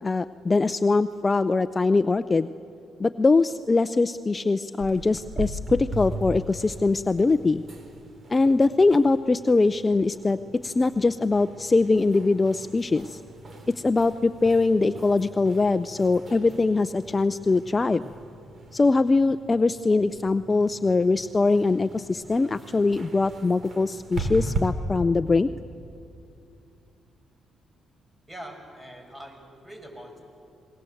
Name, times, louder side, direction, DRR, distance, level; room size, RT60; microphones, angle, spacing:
voice 1, 0.0-2.5 3.0-7.6 8.3-13.2 13.8-18.0 18.7-25.5, left 3 dB, 25° left, 13 dB, 0.5 m, -22 dB
sound 1, 4.8-24.6, right 2 dB, 45° right, 3.8 m, -39 dB
voice 2, 28.3-30.2, right 1 dB, 20° right, 3 dB, 6.3 m, -43 dB
28.0 x 21.0 x 7.9 m, 2.6 s
cardioid pair, 90°, 0 cm